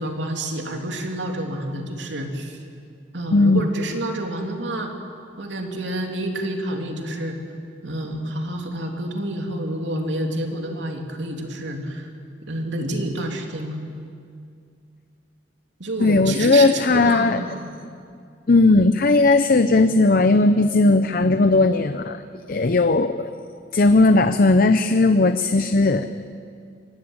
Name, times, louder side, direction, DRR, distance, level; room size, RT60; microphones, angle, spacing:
voice 1, 0.0-2.6 3.1-4.9 5.4-7.4 7.8-12.1 12.5-13.7 15.8-17.6, right 1 dB, 75° right, 2 dB, 3.0 m, -28 dB
voice 2, 3.3-3.6 16.0-17.4 18.5-22.2 22.5-23.3 23.7-26.2, left 3 dB, 50° left, 10 dB, 0.6 m, -17 dB
24.0 x 18.5 x 8.8 m, 2.4 s
head